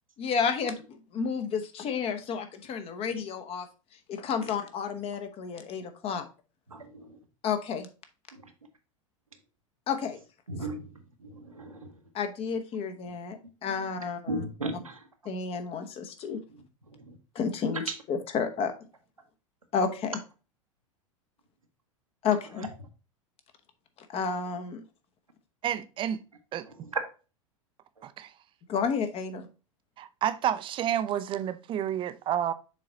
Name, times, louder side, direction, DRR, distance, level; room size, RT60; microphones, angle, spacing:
voice 1, 0.2-3.7 4.1-6.3 7.4-7.9 9.9-10.2 12.1-14.4 15.2-16.4 17.3-17.8 18.1-18.7 19.7-20.2 22.2-22.7 24.1-24.8 28.7-29.5, left 6 dB, 35° left, 1.1 m, -31 dB
voice 2, 6.7-7.1 10.5-10.9 11.3-11.8 14.3-15.0 17.1-17.2, right 1 dB, 90° right, 1.1 m, -35 dB
voice 3, 25.6-26.2 26.5-26.7 28.0-28.3 30.0-32.5, right 10 dB, 30° right, 0.5 m, -30 dB
6.7 x 4.0 x 3.9 m
figure-of-eight pair, 85°, 17 cm